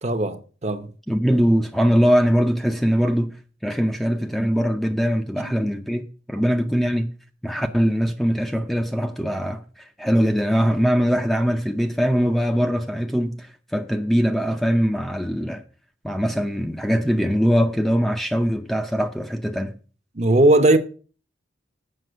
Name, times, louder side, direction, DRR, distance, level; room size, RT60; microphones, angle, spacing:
voice 1, 0.0-0.9 5.4-5.5 20.1-20.8, right 1 dB, 35° right, 0.8 m, -18 dB
voice 2, 1.1-3.3 3.6-7.1 7.4-15.6 16.0-19.7, equal, ahead, 0.5 m, -22 dB
7.7 x 5.9 x 7.8 m
head